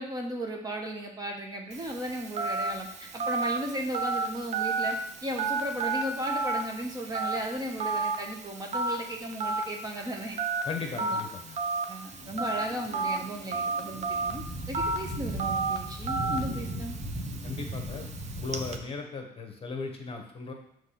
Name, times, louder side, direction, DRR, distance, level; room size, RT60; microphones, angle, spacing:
voice 1, 0.0-5.0 5.2-10.4 10.9-11.2 11.9-17.0, right 1 dB, 20° right, 1 dB, 1.1 m, -35 dB
Telephone, 1.7-18.8, right 3 dB, 45° right, 0.7 m, -33 dB
voice 2, 10.6-11.6 17.4-20.5, left 4 dB, 35° left, 3 dB, 1.0 m, -37 dB
sound 1, 12.1-18.8, equal, ahead, 1.2 m, -38 dB
5.8 x 3.2 x 5.7 m, 0.70 s
cardioid pair, 110°, 17 cm